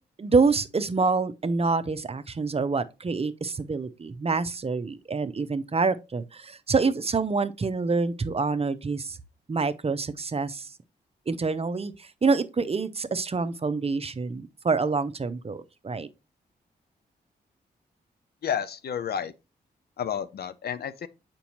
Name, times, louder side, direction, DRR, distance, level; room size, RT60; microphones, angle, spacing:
voice 1, 0.2-9.2 9.5-10.7 11.3-16.1, right 4 dB, 35° right, 0.6 m, -26 dB
voice 2, 18.4-19.3 20.0-21.1, left 8 dB, 60° left, 0.6 m, -31 dB
6.9 x 5.2 x 2.9 m
supercardioid pair, 50°, 18 cm